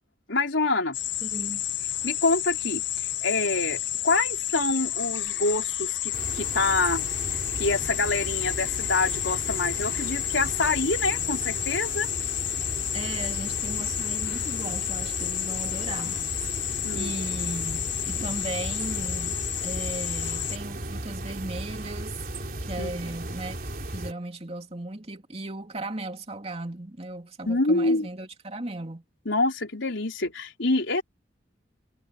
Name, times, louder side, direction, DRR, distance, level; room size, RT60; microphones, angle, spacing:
voice 1, 0.3-1.0 2.0-7.1 7.6-12.1 16.8-17.1 22.8-22.9 27.5-28.1 29.3-31.0, left 3 dB, 85° left, 3.9 m, -26 dB
sound 1, 0.9-20.6, left 13 dB, 70° left, 1.0 m, -31 dB
voice 2, 1.2-1.6 12.9-16.6 16.9-19.4 19.6-22.2 22.6-23.6 23.9-29.0, right 2 dB, 35° right, 2.7 m, -36 dB
sound 2, 6.1-24.1, right 1 dB, 50° right, 3.5 m, -36 dB
head